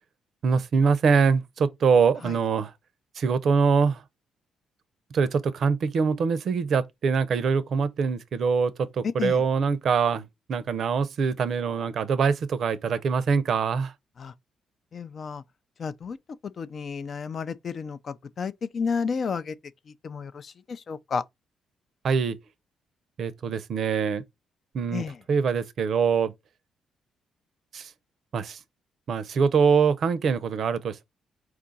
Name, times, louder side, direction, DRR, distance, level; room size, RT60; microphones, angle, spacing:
voice 1, 0.4-2.7 3.2-4.0 5.1-10.2 10.5-13.9 22.0-22.4 23.2-24.2 24.7-26.3 27.7-27.9 28.3-28.6 29.1-31.0, right 5 dB, 60° right, 0.6 m, -24 dB
voice 2, 9.0-9.4 14.2-14.3 14.9-15.4 15.8-16.2 16.4-19.5 19.9-21.2 24.9-25.2, left 5 dB, 50° left, 0.4 m, -32 dB
4.5 x 2.4 x 3.9 m
cardioid pair, 90°, 0 cm